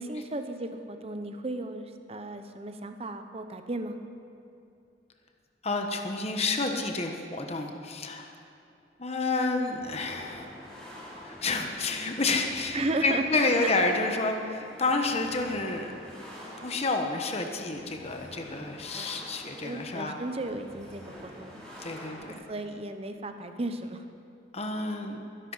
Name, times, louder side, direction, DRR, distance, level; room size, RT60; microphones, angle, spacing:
voice 1, 0.0-4.0 12.7-13.8 18.9-21.6 22.3-24.0, right 2 dB, 35° right, 7 dB, 0.9 m, -35 dB
voice 2, 5.6-8.3 9.0-10.5 11.2-15.9 16.6-20.1 21.8-22.5 24.5-25.2, left 3 dB, 35° left, 4 dB, 1.2 m, -29 dB
sound 1, 9.7-22.3, equal, 5° left, 4.3 m, -46 dB
22.0 x 11.0 x 5.6 m, 2.6 s
head